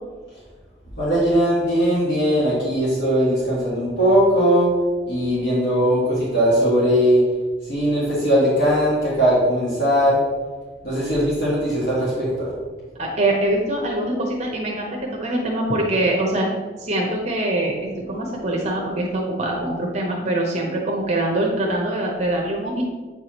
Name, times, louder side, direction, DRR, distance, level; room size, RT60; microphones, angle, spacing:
voice 1, 1.0-4.7 5.1-7.2 7.6-10.2 10.8-12.5, equal, 65° left, -8 dB, 1.7 m, -19 dB
voice 2, 13.0-16.5 16.8-22.8, right 1 dB, 40° right, 0 dB, 0.8 m, -23 dB
7.8 x 4.7 x 2.9 m, 1.4 s
head